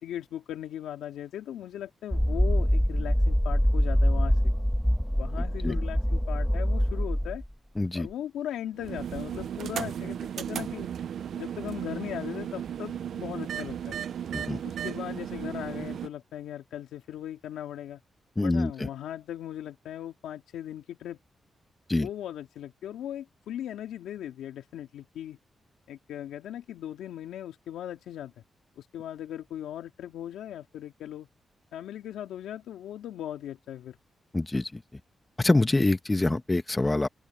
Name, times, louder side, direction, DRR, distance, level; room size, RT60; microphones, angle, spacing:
voice 1, 0.0-4.5 5.2-7.4 7.9-10.9 11.4-14.0 14.6-18.0 18.4-21.2 21.9-25.4 25.9-28.3 28.8-31.3 31.7-34.0, left 11 dB, 85° left, 2.5 m, -38 dB
sound 1, 2.1-7.5, equal, 5° left, 1.8 m, -24 dB
voice 2, 5.4-5.8 7.8-8.1 14.3-14.6 18.4-18.7 21.9-22.1 34.3-34.8 35.4-37.1, left 2 dB, 25° left, 1.8 m, -25 dB
sound 2, 8.8-16.1, right 9 dB, 75° right, 0.7 m, -35 dB
open air
supercardioid pair, 50°, 0 cm